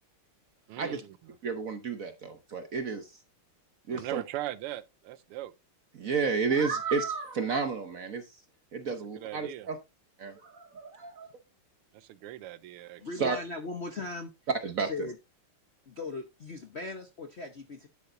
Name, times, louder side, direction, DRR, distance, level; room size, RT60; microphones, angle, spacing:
voice 1, 0.7-1.4 3.9-5.5 8.8-9.7 11.9-13.0, right 14 dB, 85° right, 1.6 m, -40 dB
voice 2, 1.4-3.1 3.9-4.2 5.9-8.3 8.7-9.8 10.2-11.3 13.2-13.4 14.6-15.1, right 5 dB, 55° right, 0.9 m, -31 dB
voice 3, 13.0-14.3 14.8-15.2 15.9-17.9, left 3 dB, 55° left, 0.7 m, -38 dB
9.9 x 8.3 x 2.6 m
omnidirectional pair, 2.4 m